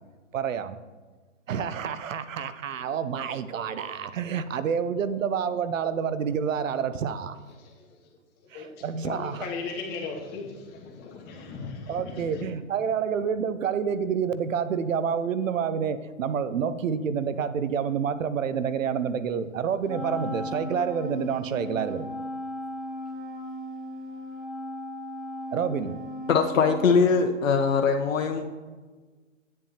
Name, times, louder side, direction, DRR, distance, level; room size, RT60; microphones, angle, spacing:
voice 1, 0.3-0.8 1.5-7.4 8.5-9.5 11.9-22.2 25.5-26.0, right 7 dB, 80° right, 13 dB, 0.6 m, -28 dB
voice 2, 7.5-8.2 8.5-12.4, left 4 dB, 25° left, 1 dB, 1.3 m, -38 dB
Wind instrument woodwind instrument, 19.9-27.5, left 1 dB, ahead, 0.7 m, -37 dB
voice 3, 26.3-28.4, left 5 dB, 85° left, 5 dB, 0.8 m, -22 dB
9.4 x 7.4 x 2.8 m, 1.4 s
hypercardioid pair, 135°, 38 cm